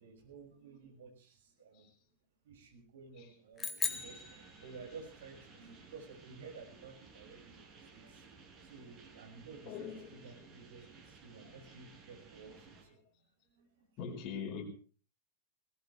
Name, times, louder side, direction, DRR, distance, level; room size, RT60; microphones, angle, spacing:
voice 1, 0.0-1.9 2.4-13.0 13.5-13.9, right 5 dB, 60° right, 6.5 m, -53 dB
sound 1, 3.6-5.2, left 5 dB, 20° left, 1.7 m, -39 dB
sound 2, 3.8-12.8, right 5 dB, 30° right, 6.7 m, -57 dB
voice 2, 4.7-5.0 9.6-10.7 11.4-11.6 14.0-14.6, left 7 dB, 35° left, 5.0 m, -44 dB
20.0 x 19.5 x 3.4 m
figure-of-eight pair, 90°, 0 cm